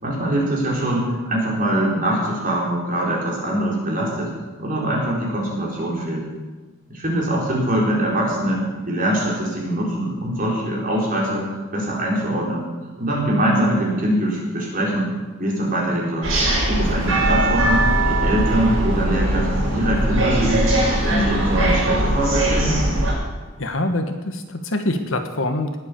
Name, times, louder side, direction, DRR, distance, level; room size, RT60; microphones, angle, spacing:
voice 1, 0.0-4.3 4.6-6.2 6.9-12.7 13.0-15.1 15.4-16.3 16.7-20.7 21.0-22.8, right 1 dB, 40° right, -3 dB, 4.2 m, -23 dB
sound 1, 16.2-23.1, right 1 dB, 70° right, 6.2 m, -20 dB
voice 2, 23.6-25.7, left 1 dB, 70° left, 7 dB, 1.4 m, -24 dB
19.0 x 8.4 x 6.9 m, 1.3 s
head